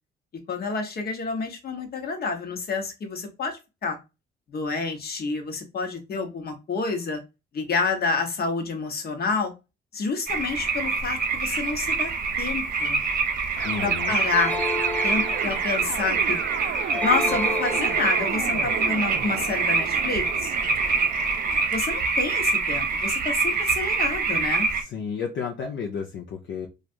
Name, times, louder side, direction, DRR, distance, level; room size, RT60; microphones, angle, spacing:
voice 1, 0.5-4.0 4.5-7.2 7.5-9.5 9.9-12.1 12.4-13.0 13.8-14.6 15.0-16.4 17.0-20.5 21.7-24.7, left 4 dB, 50° left, 5 dB, 1.1 m, -28 dB
sound 1, 10.3-24.8, right 4 dB, 45° right, 0.8 m, -25 dB
voice 2, 13.6-14.1 24.8-26.7, left 6 dB, 65° left, 1 dB, 0.7 m, -32 dB
sound 2, 13.6-21.7, right 9 dB, 70° right, 0.4 m, -34 dB
sound 3, 14.3-15.9 16.9-18.5, left 2 dB, 5° left, 0.6 m, -32 dB
3.1 x 2.5 x 2.4 m, 0.26 s
cardioid pair, 90°, 20 cm